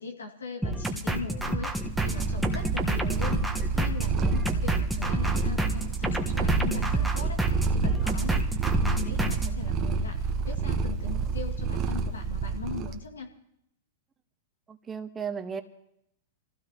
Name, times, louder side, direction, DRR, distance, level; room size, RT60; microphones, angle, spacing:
voice 1, 0.0-7.4 7.7-13.3, left 4 dB, 90° left, 2 dB, 2.4 m, -39 dB
sound 1, 0.6-9.5, right 1 dB, ahead, 1.3 m, -29 dB
Purr, 1.7-13.0, right 4 dB, 35° right, 1.2 m, -29 dB
voice 2, 14.7-15.6, right 6 dB, 20° right, 7 dB, 1.3 m, -35 dB
27.5 x 15.5 x 3.0 m, 0.79 s
hypercardioid pair, 115°, 0 cm